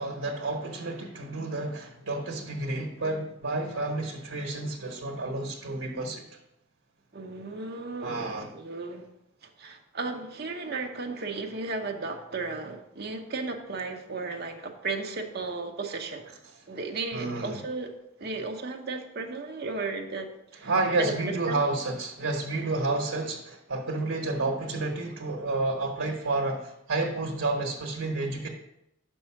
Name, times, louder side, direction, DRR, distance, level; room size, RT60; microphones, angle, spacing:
voice 1, 0.0-6.3 8.0-8.5 17.1-17.6 20.6-28.5, right 2 dB, 80° right, 1 dB, 1.1 m, -30 dB
voice 2, 7.1-9.1 9.4-16.3 16.7-17.9 18.2-20.3 20.5-20.7 21.0-21.1 21.5-21.6, right 3 dB, 45° right, 3 dB, 0.8 m, -35 dB
5.5 x 5.4 x 5.8 m, 0.83 s
head